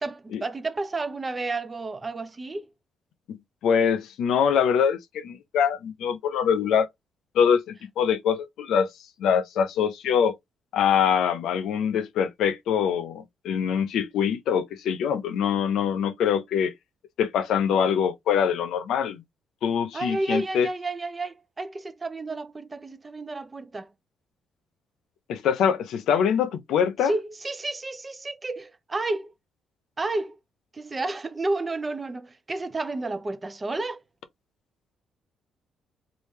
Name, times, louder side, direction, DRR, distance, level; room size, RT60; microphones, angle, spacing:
voice 1, 0.0-2.7 19.9-23.9 27.0-29.3 30.0-30.4 30.7-34.0, right 2 dB, 25° right, 0.6 m, -31 dB
voice 2, 3.6-6.9 7.3-8.9 9.2-10.4 10.7-16.7 17.2-19.2 19.6-20.7 25.3-27.1, left 7 dB, 80° left, 0.6 m, -24 dB
3.3 x 2.5 x 3.1 m
cardioid pair, 90°, 0 cm